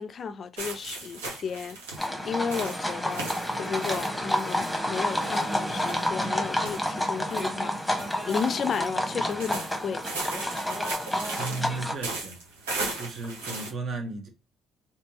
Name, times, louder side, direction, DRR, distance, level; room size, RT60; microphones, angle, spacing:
voice 1, 0.0-1.8 2.3-3.3 3.6-10.2, left 6 dB, 50° left, 0.3 m, -33 dB
sound 1, 0.6-13.7, right 3 dB, 90° right, 1.1 m, -38 dB
sound 2, 2.0-11.9, left 1 dB, 5° left, 1.0 m, -30 dB
voice 2, 11.4-12.4 12.9-14.3, right 3 dB, 50° right, 1.2 m, -34 dB
3.3 x 2.8 x 3.0 m
hypercardioid pair, 55°, 0 cm